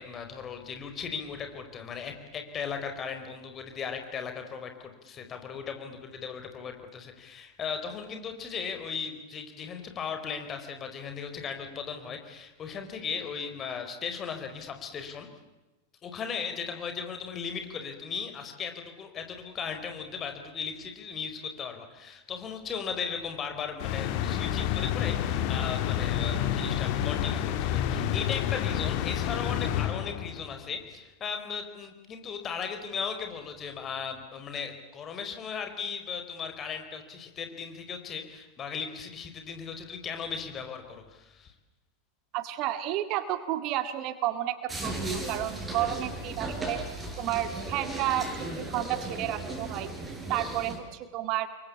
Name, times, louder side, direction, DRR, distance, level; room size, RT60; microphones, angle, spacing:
voice 1, 0.0-15.3 16.0-41.5, left 6 dB, 25° left, 6 dB, 4.6 m, -37 dB
sound 1, 23.8-30.5, left 10 dB, 45° left, 2.2 m, -29 dB
voice 2, 42.3-49.9 50.3-51.5, right 13 dB, 40° right, 11 dB, 1.9 m, -31 dB
sound 2, 44.7-50.8, right 2 dB, 15° right, 7.7 m, -36 dB
29.0 x 23.5 x 8.5 m, 1.1 s
figure-of-eight pair, 90°, 0 cm